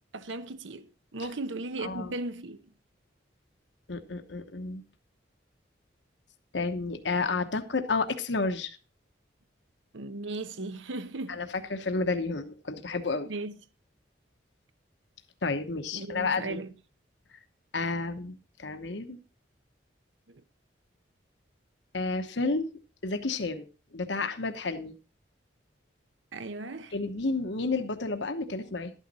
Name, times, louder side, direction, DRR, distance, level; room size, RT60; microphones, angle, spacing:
voice 1, 0.1-2.6 9.9-11.4 13.3-13.5 15.9-16.7 26.3-26.9, right 2 dB, 80° right, 0.9 m, -36 dB
voice 2, 1.8-2.1 3.9-4.8 6.5-8.8 11.3-13.3 15.4-16.6 17.7-19.2 21.9-22.7 23.0-23.7 23.9-24.9 26.9-28.9, left 3 dB, 70° left, 1.0 m, -31 dB
12.0 x 9.2 x 4.1 m
head